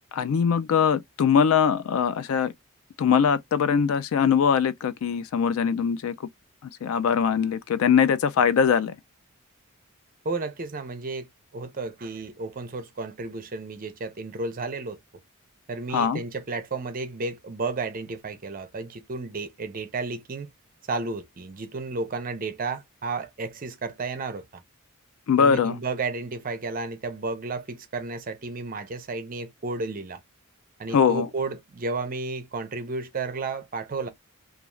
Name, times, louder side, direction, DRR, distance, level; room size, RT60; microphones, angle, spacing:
voice 1, 0.1-2.5 3.0-6.1 6.8-8.9 15.9-16.2 25.3-25.8 30.9-31.3, left 7 dB, 70° left, 0.3 m, -22 dB
voice 2, 10.2-11.3 11.5-15.0 15.7-20.5 20.9-24.6 25.4-30.2 30.8-34.1, right 3 dB, 40° right, 0.5 m, -32 dB
2.4 x 2.4 x 3.0 m
head